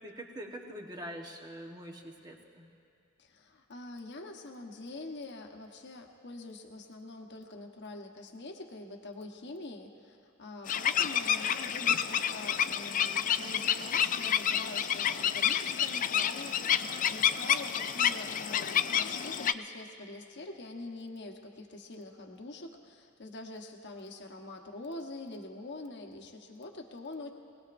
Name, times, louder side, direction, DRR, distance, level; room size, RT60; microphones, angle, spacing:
voice 1, 0.0-2.7, equal, 20° right, 1 dB, 1.2 m, -44 dB
voice 2, 3.2-27.3, left 2 dB, 55° left, 3 dB, 1.1 m, -45 dB
sound 1, 10.7-19.5, left 9 dB, 35° left, 0.3 m, -29 dB
23.5 x 19.0 x 2.6 m, 2.5 s
head